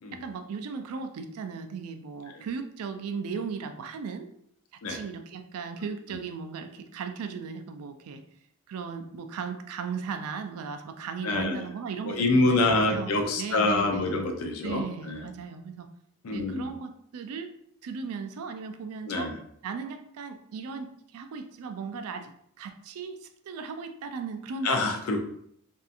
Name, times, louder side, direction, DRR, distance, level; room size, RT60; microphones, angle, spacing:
voice 1, 0.2-4.3 4.9-8.2 8.7-13.1 13.4-14.2 14.6-15.9 16.3-17.5 17.8-19.3 19.6-22.3 22.6-24.7, right 5 dB, 80° right, 8 dB, 0.3 m, -37 dB
voice 2, 11.2-11.7 12.0-15.2 16.2-16.7 19.1-19.4 24.6-25.2, left 2 dB, 75° left, 4 dB, 0.4 m, -26 dB
2.7 x 2.4 x 2.4 m, 0.69 s
head